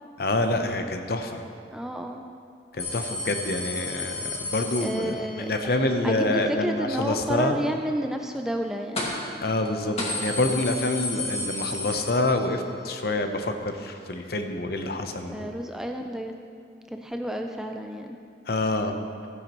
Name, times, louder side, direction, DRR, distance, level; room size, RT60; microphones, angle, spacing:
voice 1, 0.2-1.4 2.7-7.6 9.4-15.5 18.5-19.0, left 2 dB, 60° left, 6 dB, 0.8 m, -27 dB
voice 2, 1.7-2.2 4.8-5.5 6.0-9.1 15.3-16.3 16.9-18.2, equal, 5° right, 4 dB, 0.4 m, -31 dB
sound 1, 2.8-5.5 9.0-9.4 9.6-9.7 10.0-12.7 13.0-13.1 14.2-14.3, left 2 dB, 35° left, 2.1 m, -32 dB
14.5 x 9.6 x 3.1 m, 2.3 s
head